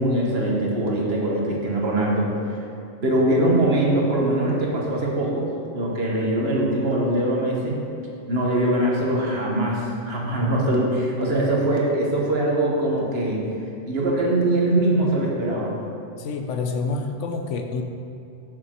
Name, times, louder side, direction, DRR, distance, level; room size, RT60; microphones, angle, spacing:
voice 1, 0.0-2.3 3.0-7.8 8.3-13.4 13.9-15.8, right 1 dB, 55° right, -2 dB, 1.4 m, -22 dB
voice 2, 16.2-17.8, left 4 dB, 75° left, 5 dB, 1.0 m, -28 dB
6.9 x 6.5 x 4.4 m, 2.7 s
omnidirectional pair, 1.3 m